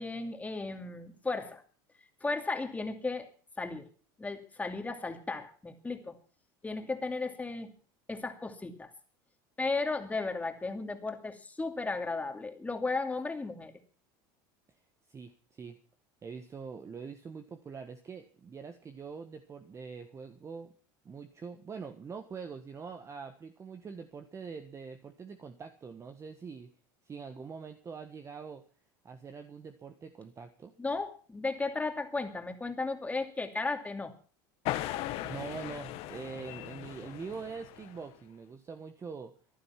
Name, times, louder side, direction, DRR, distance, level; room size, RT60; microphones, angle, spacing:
voice 1, 0.0-1.6 2.2-3.3 3.6-3.9 4.2-6.1 6.6-7.7 8.1-8.9 9.6-13.7 30.8-34.1, left 3 dB, 15° left, 6 dB, 2.5 m, -35 dB
voice 2, 15.1-15.8 16.2-20.7 21.0-26.7 27.0-28.6 29.0-30.7 35.2-39.3, right 5 dB, 25° right, 8 dB, 1.4 m, -44 dB
sound 1, 34.7-38.1, left 15 dB, 60° left, 1.6 m, -38 dB
15.0 x 11.0 x 5.9 m, 0.40 s
supercardioid pair, 105°, 11 cm